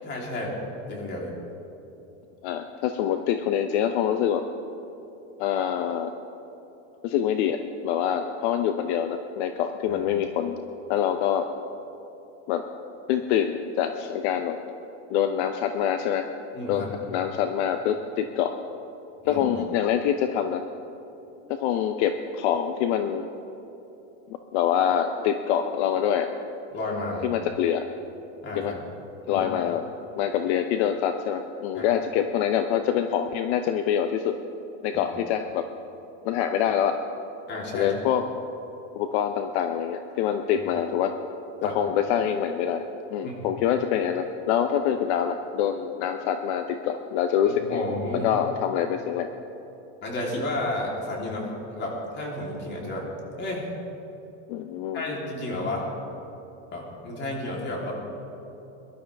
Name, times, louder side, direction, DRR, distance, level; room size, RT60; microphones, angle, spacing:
voice 1, 0.0-0.6 0.9-1.3 9.9-10.0 16.5-16.9 19.2-19.4 26.7-27.3 28.4-28.7 29.2-29.5 31.7-31.9 34.9-35.0 37.5-37.9 41.6-41.8 43.2-43.5 47.4-48.3 50.0-53.1 53.4-53.7 54.9-55.9 56.7-57.9, left 1 dB, 30° left, -2 dB, 3.4 m, -32 dB
voice 2, 2.4-4.4 5.4-6.1 7.0-10.6 10.9-11.5 12.5-12.7 13.1-14.6 15.1-16.3 16.7-18.5 19.3-20.6 21.5-23.2 24.5-26.3 27.2-27.9 28.6-28.7 29.3-29.8 30.2-34.3 34.8-35.7 36.2-37.0 37.7-38.2 38.9-41.1 41.6-42.8 43.1-47.8 48.1-49.3 54.5-55.0, left 9 dB, 65° left, 7 dB, 0.8 m, -25 dB
22.5 x 12.0 x 3.5 m, 3.0 s
supercardioid pair, 135°, 36 cm